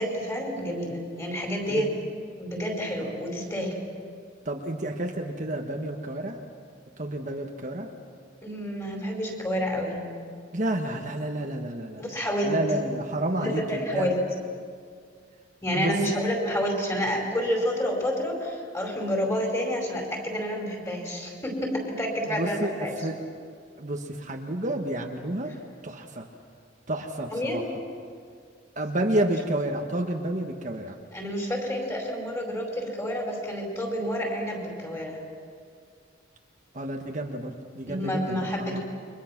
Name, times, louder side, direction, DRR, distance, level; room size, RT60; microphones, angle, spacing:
voice 1, 0.0-1.9 2.4-3.7 8.4-10.0 12.0-12.6 13.3-14.2 15.6-23.1 27.3-27.7 31.1-35.2 37.9-38.8, equal, 15° left, 1 dB, 5.1 m, -29 dB
voice 2, 4.4-6.4 7.0-7.9 10.5-12.0 12.4-14.1 15.7-15.9 22.3-23.2 23.8-25.5 25.8-26.3 26.9-27.6 28.8-31.0 36.7-38.8, right 1 dB, 40° right, 2 dB, 1.4 m, -30 dB
29.5 x 24.0 x 6.0 m, 2.1 s
head